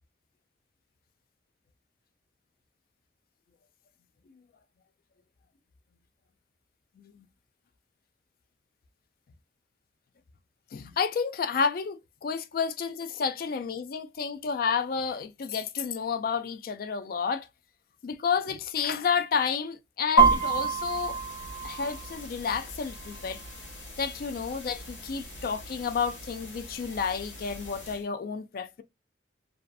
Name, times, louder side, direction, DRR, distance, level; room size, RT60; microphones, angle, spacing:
voice 1, 10.7-17.4 18.0-21.2 21.6-23.4 24.0-28.8, left 6 dB, 50° left, 0.3 m, -30 dB
sound 1, 20.2-28.0, right 4 dB, 70° left, 1.2 m, -30 dB
2.6 x 2.4 x 2.3 m
head